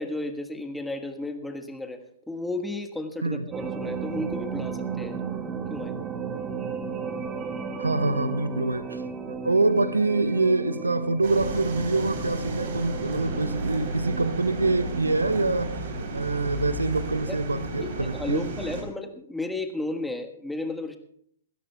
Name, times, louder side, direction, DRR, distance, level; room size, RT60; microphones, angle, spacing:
voice 1, 0.0-2.0 2.3-5.2 5.7-5.9 17.3-17.4 17.8-21.0, left 2 dB, 5° left, 1.4 m, -33 dB
sound 1, 3.5-15.6, right 5 dB, 20° right, 1.2 m, -35 dB
voice 2, 7.8-9.0 9.3-15.8 16.1-18.4, right 3 dB, 85° right, 0.8 m, -25 dB
sound 2, 11.2-18.8, right 2 dB, 55° right, 3.6 m, -33 dB
26.5 x 13.5 x 2.3 m
figure-of-eight pair, 120°, 0 cm